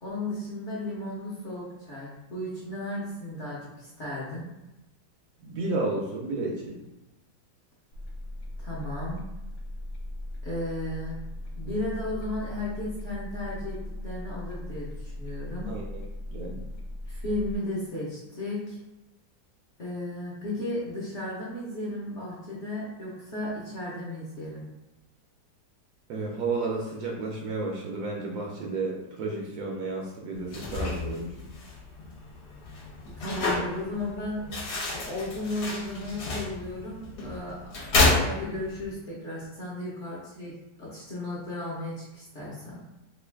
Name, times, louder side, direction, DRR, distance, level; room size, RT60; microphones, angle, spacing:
voice 1, 0.0-4.5 8.6-9.2 10.4-11.2 11.5-13.8 14.0-15.7 17.1-18.8 19.8-24.7 33.2-34.4 34.9-37.6 37.9-40.5 40.8-42.8, left 1 dB, 50° left, -7 dB, 0.9 m, -34 dB
voice 2, 5.5-6.8 15.7-16.0 16.3-16.6 26.1-31.3, right 3 dB, 70° right, -2 dB, 1.0 m, -32 dB
sound 1, 7.9-17.6, left 1 dB, 90° left, 0.7 m, -38 dB
sound 2, 30.4-38.9, left 3 dB, 65° left, 1.2 m, -30 dB
3.1 x 2.4 x 3.3 m, 0.98 s
omnidirectional pair, 1.9 m